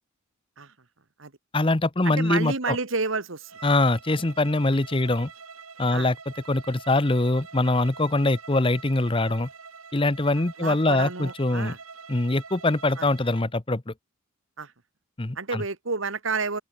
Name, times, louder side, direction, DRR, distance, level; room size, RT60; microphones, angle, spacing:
voice 1, 1.5-2.8 3.6-5.3 5.8-6.2 6.5-9.5 9.9-11.8 12.1-13.9 15.2-15.6, left 2 dB, 25° left, 0.8 m, -23 dB
voice 2, 2.0-3.5 5.9-6.1 10.6-11.8 13.0-13.1 14.6-14.7 15.3-16.6, right 4 dB, 65° right, 1.7 m, -30 dB
Bowed string instrument, 3.4-13.5, right 5 dB, 80° right, 6.6 m, -45 dB
open air
head